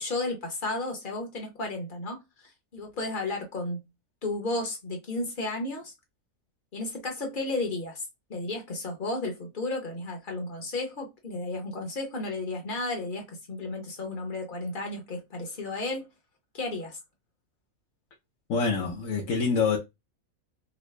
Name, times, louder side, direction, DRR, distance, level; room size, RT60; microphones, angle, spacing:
voice 1, 0.0-3.8 4.2-5.9 6.7-16.1 16.5-17.0, left 2 dB, 40° left, 0.9 m, -33 dB
voice 2, 18.5-19.8, left 5 dB, 70° left, 1.2 m, -26 dB
4.0 x 2.0 x 3.2 m
omnidirectional pair, 1.4 m